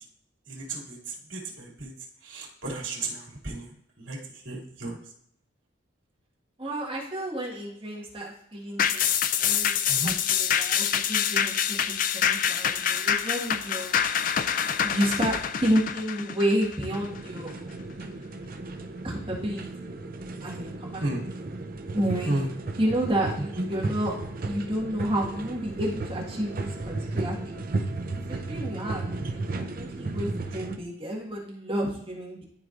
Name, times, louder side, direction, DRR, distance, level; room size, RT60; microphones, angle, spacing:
voice 1, 0.5-1.9 2.2-3.7 4.0-4.2 4.4-5.0 9.9-10.2 21.0-21.2 22.2-22.5 23.6-23.7, right 2 dB, 75° right, -4 dB, 2.6 m, -33 dB
voice 2, 6.6-9.1 9.4-14.0 14.8-17.5 19.0-19.7 20.4-21.0 21.9-22.3 22.8-24.1 24.4-27.6 28.1-32.4, right 1 dB, 25° right, -4 dB, 1.6 m, -30 dB
sound 1, 8.8-17.5 17.9-18.0, left 8 dB, 40° left, 0.3 m, -26 dB
sound 2, 16.9-30.8, right 2 dB, 45° right, 0.5 m, -34 dB
12.5 x 4.6 x 2.6 m, 0.70 s
head